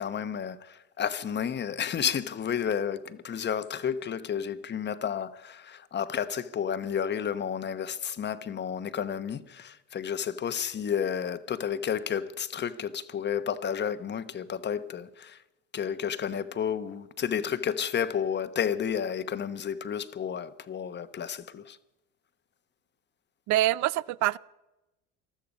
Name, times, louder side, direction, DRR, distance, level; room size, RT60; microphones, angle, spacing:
voice 1, 0.0-15.4 15.7-21.8, left 8 dB, 35° left, 1.0 m, -31 dB
voice 2, 23.5-24.4, right 14 dB, 60° right, 0.6 m, -25 dB
20.5 x 13.0 x 5.3 m
supercardioid pair, 95°, 32 cm